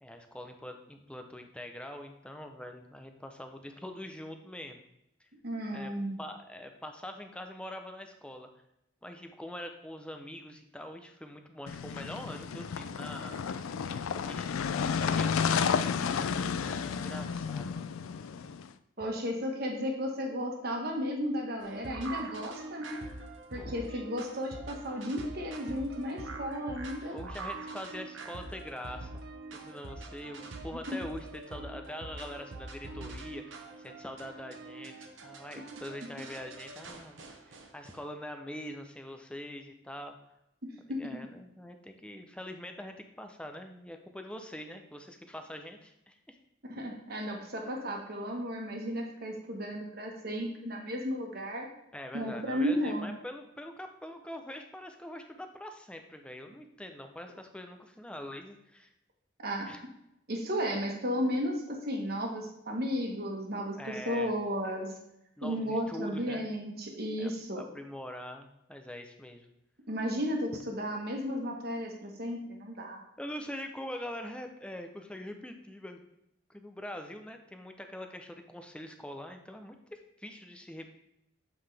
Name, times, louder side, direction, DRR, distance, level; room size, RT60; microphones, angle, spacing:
voice 1, 0.0-4.8 5.7-5.9 6.2-8.5 9.0-13.8 14.3-15.7 16.6-17.9 23.6-24.0 27.0-29.3 29.5-37.2 37.5-40.2 40.9-46.3 51.9-58.9 59.7-59.8 63.8-64.4 65.4-66.5 67.2-69.5 73.2-76.0 76.5-80.9, left 1 dB, 5° left, 5 dB, 0.5 m, -44 dB
voice 2, 5.4-6.2 19.0-23.0 23.5-27.2 30.9-31.0 40.6-41.2 46.7-51.7 52.1-53.1 59.4-59.8 60.3-64.9 65.4-67.6 69.9-73.0, equal, 50° right, 1 dB, 1.4 m, -34 dB
sound 1, 11.7-18.7, left 6 dB, 85° left, 0.4 m, -32 dB
sound 2, 21.6-38.0, right 3 dB, 65° right, 0.9 m, -44 dB
7.8 x 5.5 x 3.4 m, 0.82 s
head